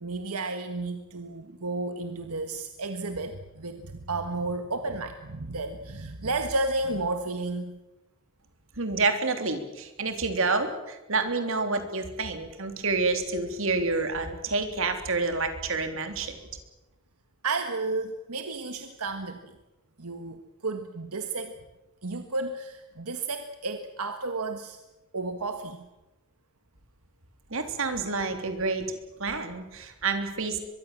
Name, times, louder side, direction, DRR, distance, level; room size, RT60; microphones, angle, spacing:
voice 1, 0.0-7.8 17.4-19.5 20.0-21.5 22.0-24.8 25.1-25.8, right 3 dB, 85° right, 7 dB, 1.6 m, -32 dB
voice 2, 8.8-16.4 27.5-30.6, right 3 dB, 60° right, 6 dB, 3.3 m, -28 dB
23.5 x 22.5 x 7.5 m, 1.0 s
head